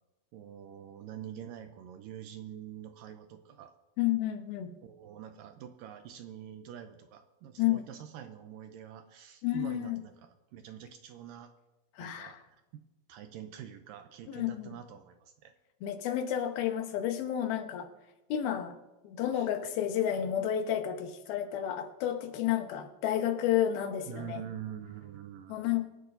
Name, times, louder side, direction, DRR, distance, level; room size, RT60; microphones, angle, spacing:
voice 1, 0.3-3.7 4.8-11.5 12.0-12.4 12.7-12.8 13.1-15.5 19.3-19.5 24.1-25.8, right 10 dB, 80° right, 7 dB, 2.1 m, -45 dB
voice 2, 4.0-4.7 7.6-7.8 9.4-10.0 12.0-12.4 14.3-14.7 15.8-17.9 18.3-18.8 19.0-24.4 25.5-25.8, left 11 dB, 75° left, 6 dB, 2.9 m, -31 dB
24.0 x 11.0 x 2.7 m, 1.1 s
omnidirectional pair, 4.5 m